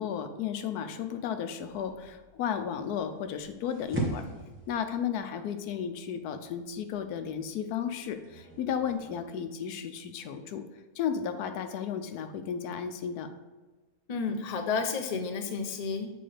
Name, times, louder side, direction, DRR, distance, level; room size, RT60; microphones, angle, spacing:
voice 1, 0.0-4.3 4.7-10.6 11.0-13.3, left 8 dB, 90° left, 8 dB, 1.2 m, -34 dB
sound 1, 1.6-9.2, right 2 dB, 10° right, 0.9 m, -41 dB
voice 2, 14.1-16.1, left 5 dB, 55° left, 5 dB, 0.4 m, -31 dB
7.7 x 4.2 x 3.3 m, 1.3 s
omnidirectional pair, 1.6 m